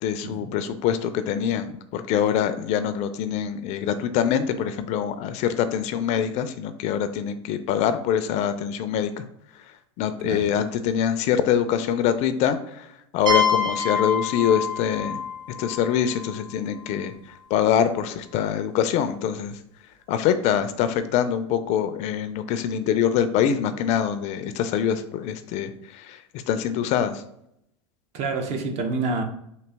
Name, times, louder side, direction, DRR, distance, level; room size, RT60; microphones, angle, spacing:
voice 1, 0.0-9.2 10.0-15.2 15.6-17.1 17.5-19.6 20.1-26.2 26.5-27.2, left 9 dB, 45° left, 0.4 m, -24 dB
sound 1, 13.3-16.9, left 4 dB, 85° right, 1.1 m, -26 dB
voice 2, 28.1-29.2, right 3 dB, 45° right, 0.7 m, -27 dB
3.9 x 2.7 x 3.4 m
hypercardioid pair, 110°, 16 cm